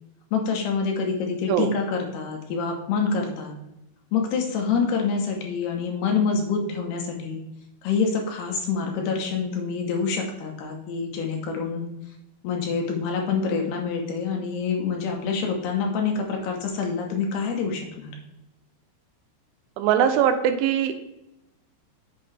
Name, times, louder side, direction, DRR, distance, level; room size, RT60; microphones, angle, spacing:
voice 1, 0.3-3.5 4.1-7.4 7.8-11.9 12.4-18.1, left 5 dB, 70° left, 1 dB, 2.8 m, -26 dB
voice 2, 19.8-20.9, right 9 dB, 85° right, 8 dB, 3.2 m, -21 dB
7.6 x 7.0 x 3.3 m, 0.89 s
omnidirectional pair, 5.4 m